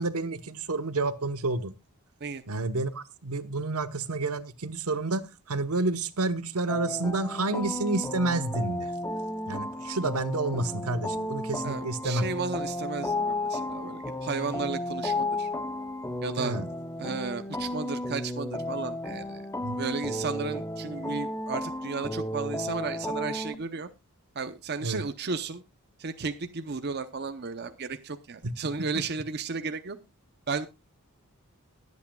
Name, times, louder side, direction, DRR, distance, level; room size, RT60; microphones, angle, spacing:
voice 1, 0.0-1.7 2.5-8.9 9.5-12.3 16.4-16.7 19.6-19.8 24.8-25.0 28.4-28.5 28.8-28.9, right 2 dB, 80° right, 1.0 m, -29 dB
sound 1, 6.7-23.5, left 1 dB, 10° left, 0.6 m, -33 dB
voice 2, 11.6-15.5 16.2-16.6 17.0-19.5 19.8-23.9 24.3-25.6 26.0-30.0 30.5-30.7, right 4 dB, 50° right, 0.7 m, -34 dB
20.5 x 8.3 x 2.3 m
head